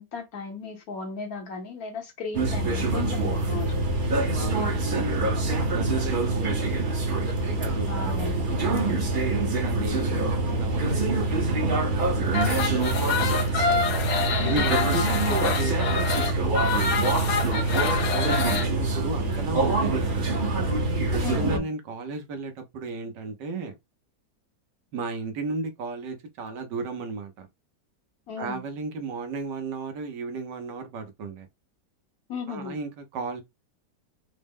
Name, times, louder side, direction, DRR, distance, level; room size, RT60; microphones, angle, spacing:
voice 1, 0.0-3.8 7.9-9.0 14.4-14.7 21.2-21.6 28.3-28.6 32.3-32.8, left 5 dB, 60° left, 1.3 m, -36 dB
sound 1, 2.3-21.6, right 2 dB, 40° right, 0.8 m, -25 dB
voice 2, 4.4-7.0 7.5-7.9 8.6-9.0 9.2-13.4 14.4-17.1 17.5-20.2 21.1-23.7 24.9-27.5 28.4-31.5 32.5-33.4, right 3 dB, 80° right, 1.5 m, -35 dB
sound 2, 12.3-18.7, left 5 dB, 85° left, 1.6 m, -27 dB
4.5 x 2.1 x 3.5 m
omnidirectional pair, 1.9 m